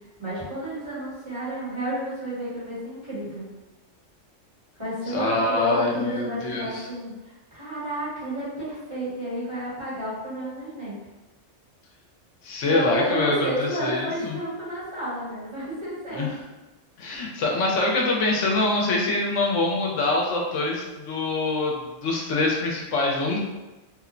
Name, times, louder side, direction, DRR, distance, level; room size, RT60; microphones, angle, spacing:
voice 1, 0.2-3.4 4.7-11.0 12.6-16.3, right 1 dB, 25° right, -10 dB, 1.2 m, -31 dB
voice 2, 5.1-6.9 12.4-14.4 16.1-16.3 17.0-23.4, left 2 dB, 75° left, -1 dB, 0.9 m, -24 dB
2.9 x 2.0 x 2.4 m, 1.1 s
omnidirectional pair, 1.3 m